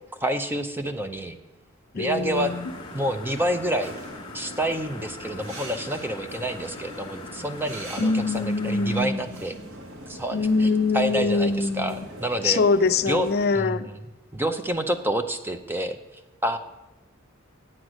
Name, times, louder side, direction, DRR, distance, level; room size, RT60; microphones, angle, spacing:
voice 1, 0.2-1.4 1.9-2.5 2.9-4.0 4.3-9.5 10.1-10.7 10.9-12.6 13.1-13.3 13.5-14.0 14.3-16.0 16.4-16.6, right 1 dB, 10° right, 0.5 m, -28 dB
voice 2, 1.9-2.7 8.0-9.4 10.3-12.1 12.4-13.9, left 4 dB, 50° left, 0.5 m, -24 dB
sound 1, 2.0-13.5, right 1 dB, 65° right, 1.4 m, -42 dB
sound 2, 2.3-9.0, left 3 dB, 25° left, 1.2 m, -43 dB
8.8 x 7.8 x 6.1 m
head